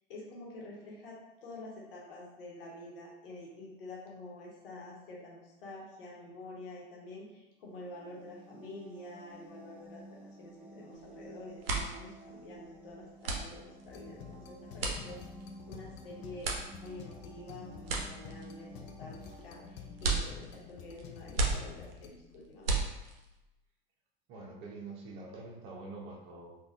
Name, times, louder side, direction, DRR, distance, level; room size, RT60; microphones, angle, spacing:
voice 1, 0.1-15.3 15.7-16.5 16.8-19.2 19.4-22.8, left 2 dB, 70° left, -3 dB, 1.0 m, -48 dB
sound 1, 7.6-21.2, right 2 dB, 5° right, 0.7 m, -53 dB
sound 2, 10.9-11.2 11.5-23.4, right 3 dB, 75° right, 0.6 m, -36 dB
sound 3, 13.9-22.1, left 8 dB, 40° left, 0.4 m, -50 dB
voice 2, 24.3-26.6, right 3 dB, 45° right, -1 dB, 0.8 m, -45 dB
3.5 x 2.4 x 2.4 m, 0.98 s
figure-of-eight pair, 85°, 29 cm